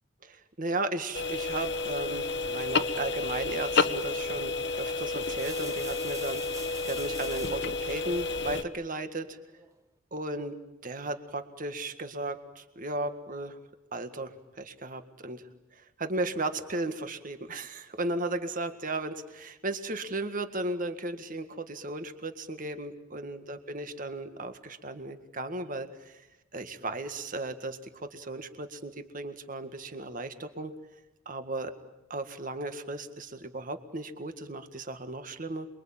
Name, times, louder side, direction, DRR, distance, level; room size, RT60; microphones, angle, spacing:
voice 1, 0.2-9.4 10.1-10.6 10.8-13.6 13.9-26.3 26.5-30.7 31.3-31.7 32.1-35.7, right 2 dB, 45° right, 8 dB, 1.9 m, -35 dB
sound 1, 1.1-8.6, left 3 dB, 60° left, 1.3 m, -31 dB
sound 2, 5.2-7.7 9.1-9.8, right 4 dB, 15° right, 1.2 m, -47 dB
28.0 x 23.0 x 9.0 m, 0.95 s
head